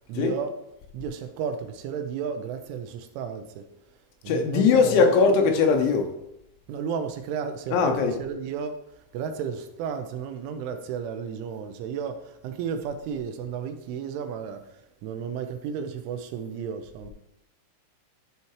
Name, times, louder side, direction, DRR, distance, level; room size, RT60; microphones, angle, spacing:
voice 1, 0.1-0.5 0.9-3.7 4.2-5.3 6.7-8.8 9.1-17.1, right 7 dB, 90° right, 3.1 m, -33 dB
voice 2, 4.3-6.1 7.7-8.2, left 5 dB, 80° left, 3.1 m, -20 dB
11.5 x 5.6 x 3.1 m
omnidirectional pair, 5.6 m